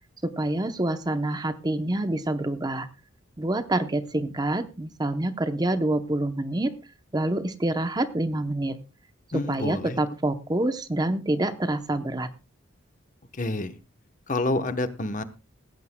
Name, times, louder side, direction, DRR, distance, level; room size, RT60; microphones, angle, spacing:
voice 1, 0.2-2.9 3.4-6.7 7.1-8.8 9.5-12.3, right 1 dB, 20° right, 10 dB, 0.7 m, -27 dB
voice 2, 9.3-10.0 13.3-13.8 14.3-15.2, left 2 dB, 40° left, 10 dB, 0.9 m, -28 dB
18.0 x 15.5 x 2.2 m, 0.30 s
head